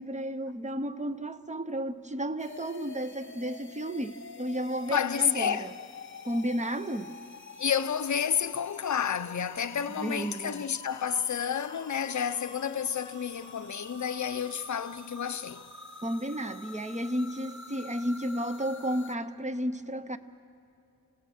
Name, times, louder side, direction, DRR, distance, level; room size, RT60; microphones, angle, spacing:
voice 1, 0.0-5.7 6.2-7.2 10.0-10.6 16.0-20.2, equal, 20° right, 0.6 m, -33 dB
sound 1, 2.4-19.1, left 3 dB, 30° left, 1.0 m, -47 dB
voice 2, 4.9-5.7 7.6-15.7, left 8 dB, 50° left, 0.6 m, -30 dB
28.0 x 16.5 x 6.4 m
wide cardioid pair, 125°, 37 cm